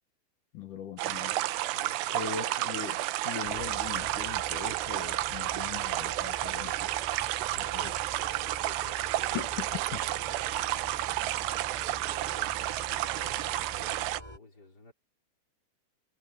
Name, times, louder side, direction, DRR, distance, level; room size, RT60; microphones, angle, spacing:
voice 1, 0.5-1.4 2.1-6.9 7.8-7.9 9.3-9.7 9.9-10.0, left 7 dB, 60° left, 2.2 m, -40 dB
sound 1, 1.0-14.2, right 16 dB, 75° right, 2.9 m, -31 dB
voice 2, 1.7-2.4 3.5-3.6 7.5-9.4 9.7-10.7 11.4-14.9, left 2 dB, 20° left, 4.8 m, -54 dB
sound 2, 3.4-14.4, equal, 5° left, 7.5 m, -47 dB
omnidirectional pair, 5.3 m